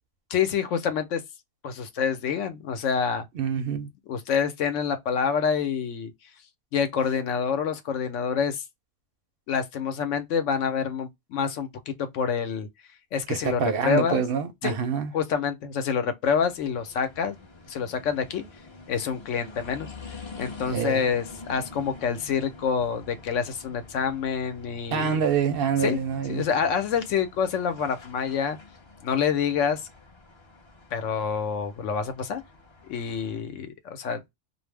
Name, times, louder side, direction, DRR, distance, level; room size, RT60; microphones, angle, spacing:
voice 1, 0.3-1.2 1.6-3.3 4.1-6.1 6.7-8.6 9.5-12.7 13.1-14.2 14.6-14.8 15.1-17.4 17.7-18.4 18.9-19.9 20.4-25.2 25.8-26.0 26.3-28.6 29.0-29.8 30.9-32.4 32.9-34.2, left 7 dB, 75° left, 0.9 m, -27 dB
voice 2, 3.4-3.9 13.3-15.1 20.7-21.0 24.9-26.5, right 7 dB, 60° right, 0.6 m, -26 dB
sound 1, 16.2-33.4, left 3 dB, 30° left, 0.5 m, -47 dB
2.4 x 2.0 x 3.2 m
omnidirectional pair, 1.3 m